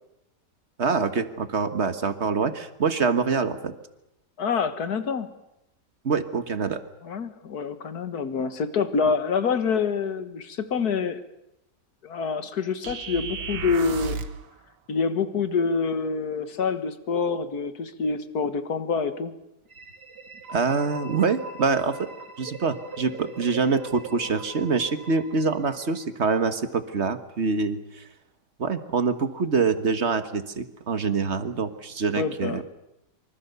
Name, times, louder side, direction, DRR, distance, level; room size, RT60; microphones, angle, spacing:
voice 1, 0.8-3.7 6.0-6.8 20.5-22.1 22.4-28.0 28.6-32.6, right 4 dB, 40° right, 10 dB, 1.6 m, -25 dB
voice 2, 4.4-5.3 7.0-11.2 12.0-14.2 14.9-19.3 32.2-32.6, left 5 dB, 60° left, 10 dB, 2.0 m, -26 dB
sound 1, 12.8-14.5, right 5 dB, 85° right, 1.9 m, -33 dB
sound 2, 19.7-26.4, right 3 dB, 65° right, 3.5 m, -42 dB
25.5 x 25.0 x 6.9 m, 0.87 s
omnidirectional pair, 1.9 m